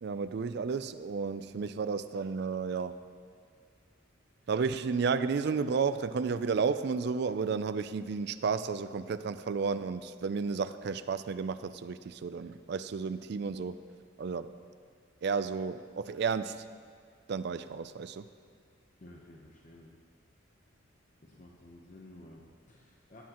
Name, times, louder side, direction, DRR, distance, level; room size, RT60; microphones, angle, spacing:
voice 1, 0.0-3.0 4.5-13.8 14.2-14.5 15.2-16.6 17.3-18.3, right 5 dB, 55° right, 12 dB, 0.3 m, -32 dB
voice 2, 19.0-19.9 21.2-23.2, left 1 dB, 40° left, -2 dB, 0.9 m, -53 dB
16.0 x 9.4 x 3.0 m, 2.1 s
head